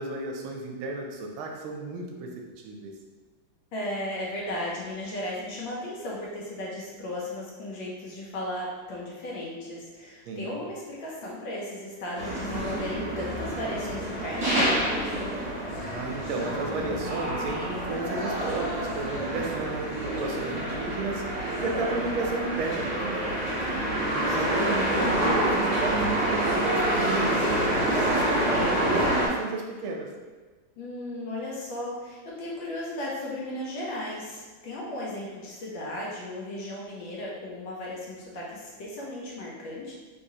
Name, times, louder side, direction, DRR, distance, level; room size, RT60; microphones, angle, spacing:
voice 1, 0.0-2.3 2.6-2.9 10.3-10.7 15.8-23.3 23.9-30.1, right 2 dB, 80° right, 1 dB, 1.3 m, -33 dB
voice 2, 3.7-15.3 23.5-24.3 30.8-39.9, left 1 dB, 70° left, -4 dB, 1.4 m, -36 dB
sound 1, 12.2-29.3, right 1 dB, 40° right, 1.5 m, -27 dB
3.6 x 3.1 x 2.7 m, 1.4 s
omnidirectional pair, 2.3 m